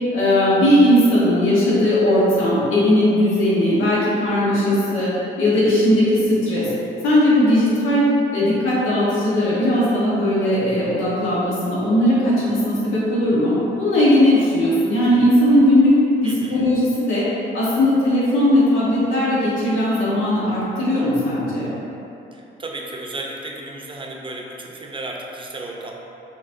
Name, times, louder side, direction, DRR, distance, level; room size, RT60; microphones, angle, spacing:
voice 1, 0.1-6.7 7.0-15.9 16.2-17.2 17.5-21.7, left 1 dB, 90° left, -8 dB, 1.1 m, -18 dB
voice 2, 16.2-16.7 22.3-25.9, right 2 dB, 25° right, 0 dB, 0.6 m, -34 dB
6.2 x 3.0 x 2.6 m, 2.9 s
cardioid pair, 90°, 20 cm